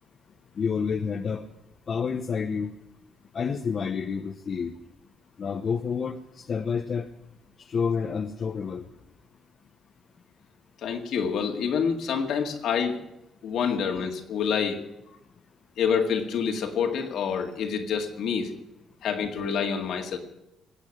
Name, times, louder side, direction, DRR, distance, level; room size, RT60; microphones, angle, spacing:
voice 1, 0.6-1.5 1.9-2.7 3.3-4.7 5.4-7.1 7.6-8.8, left 6 dB, 50° left, 6 dB, 0.9 m, -29 dB
voice 2, 10.8-13.0 13.4-14.8 15.8-18.5 19.0-20.2, left 6 dB, 75° left, 4 dB, 2.0 m, -27 dB
19.0 x 8.4 x 8.5 m, 0.91 s
cardioid pair, 90°, 0 cm